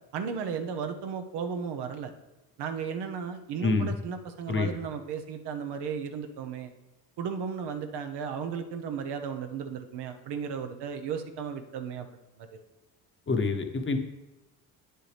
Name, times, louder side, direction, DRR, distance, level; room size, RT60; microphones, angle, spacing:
voice 1, 0.1-2.1 2.6-6.7 7.2-12.1 12.4-12.5, right 6 dB, 65° right, 7 dB, 1.0 m, -35 dB
voice 2, 3.6-3.9 4.5-4.7 13.3-14.0, left 3 dB, 30° left, 5 dB, 1.0 m, -26 dB
9.1 x 6.7 x 3.4 m, 1.0 s
supercardioid pair, 70°, 43 cm